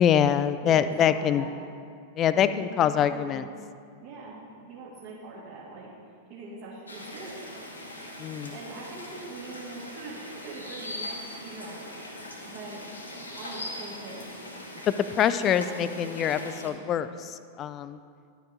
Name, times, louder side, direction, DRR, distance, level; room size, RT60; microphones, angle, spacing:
voice 1, 0.0-1.5 2.2-3.5 8.2-8.5 14.9-18.0, left 9 dB, 30° left, 13 dB, 0.3 m, -24 dB
voice 2, 0.6-1.5 2.3-3.5 4.0-5.9 6.3-7.4 8.5-11.0 11.4-11.9 12.4-12.9 13.4-14.2 15.1-16.7, right 3 dB, 45° right, -6 dB, 1.5 m, -42 dB
sound 1, 6.9-16.7, left 1 dB, 75° left, 1.0 m, -41 dB
11.0 x 5.1 x 3.6 m, 2.3 s
figure-of-eight pair, 90°, 0 cm